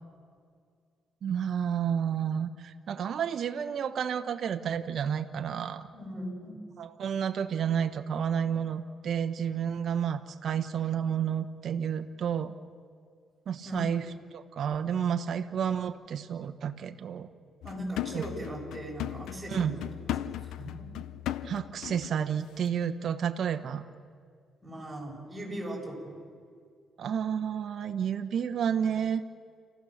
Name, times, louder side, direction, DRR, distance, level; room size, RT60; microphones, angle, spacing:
voice 1, 1.2-5.9 6.8-12.5 13.5-14.0 14.3-17.3 18.1-18.3 19.5-19.7 21.4-23.8 27.0-29.2, right 8 dB, 60° right, 8 dB, 1.0 m, -30 dB
voice 2, 5.9-6.6 13.6-13.9 17.6-19.8 20.4-20.9 24.6-26.2, right 1 dB, 15° right, -3 dB, 7.5 m, -38 dB
sound 1, 17.6-22.2 22.5-22.7, left 12 dB, 85° left, 0.6 m, -37 dB
29.5 x 15.0 x 6.6 m, 2.2 s
cardioid pair, 90°, 0 cm